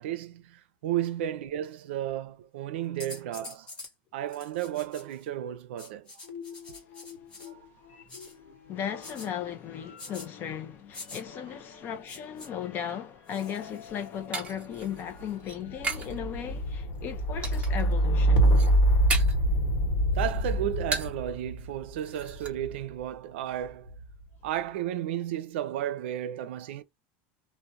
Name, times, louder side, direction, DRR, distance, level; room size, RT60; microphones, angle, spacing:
voice 1, 0.0-3.7 4.1-6.1 7.5-7.6 20.1-24.0 24.4-26.8, right 11 dB, 90° right, 0.4 m, -33 dB
sound 1, 3.0-3.9 4.3-5.2 5.8-7.5 8.1-8.3 9.0-9.3 10.0-10.3 10.9-11.2 12.1-12.5 13.3-14.2 14.8-15.3, left 2 dB, 15° left, 0.9 m, -46 dB
sound 2, 6.2-7.6 7.8-22.9 23.7-24.2, right 1 dB, 85° left, 1.0 m, -28 dB
voice 2, 8.7-18.5, left 9 dB, 35° left, 0.4 m, -36 dB
sound 3, 13.6-16.2 16.5-17.0 17.4-17.9 18.3-19.5 19.9-21.3 21.6-21.7 22.0-22.5, right 4 dB, 20° right, 0.7 m, -36 dB
2.2 x 2.1 x 2.6 m
supercardioid pair, 145°, 6 cm